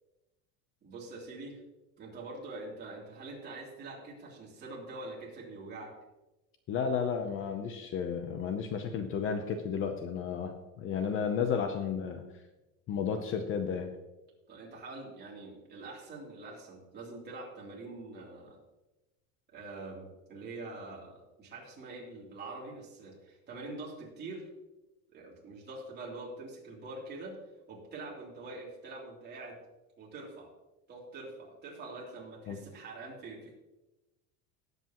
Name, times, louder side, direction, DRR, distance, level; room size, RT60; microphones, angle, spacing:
voice 1, 0.8-1.6 2.0-5.9 11.2-11.5 14.5-18.6 19.5-24.4 25.1-27.4 27.7-29.6 30.0-30.5 30.9-33.5, right 2 dB, 25° right, -3 dB, 3.2 m, -45 dB
voice 2, 6.7-12.2 12.9-13.9 32.5-32.6, left 6 dB, 35° left, 6 dB, 0.7 m, -33 dB
18.5 x 8.1 x 3.0 m, 1.0 s
cardioid pair, 165°, 38 cm